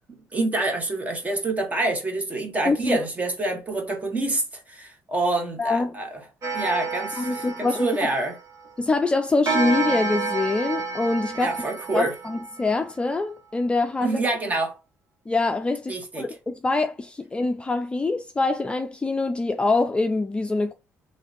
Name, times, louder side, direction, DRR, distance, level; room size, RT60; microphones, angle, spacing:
voice 1, 0.3-6.2 6.5-8.4 11.4-12.1 14.0-14.8 15.9-16.3, right 2 dB, 25° right, 1.3 m, -27 dB
voice 2, 2.6-3.0 5.6-6.0 7.2-8.1 8.8-11.6 11.9-14.2 15.3-20.7, left 3 dB, 20° left, 0.4 m, -24 dB
Clock, 6.4-8.7 9.5-12.8, right 4 dB, 60° right, 1.5 m, -29 dB
3.2 x 2.8 x 4.1 m
cardioid pair, 95°, 6 cm